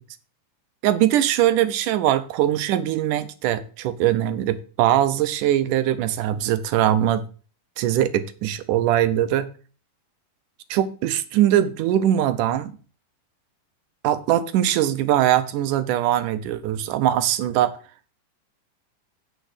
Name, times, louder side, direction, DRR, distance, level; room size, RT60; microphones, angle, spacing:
voice 1, 0.8-7.2 7.8-9.5 10.7-12.8 14.0-17.8, right 12 dB, 80° right, 12 dB, 2.4 m, -21 dB
9.3 x 6.8 x 4.9 m, 0.38 s
omnidirectional pair, 3.6 m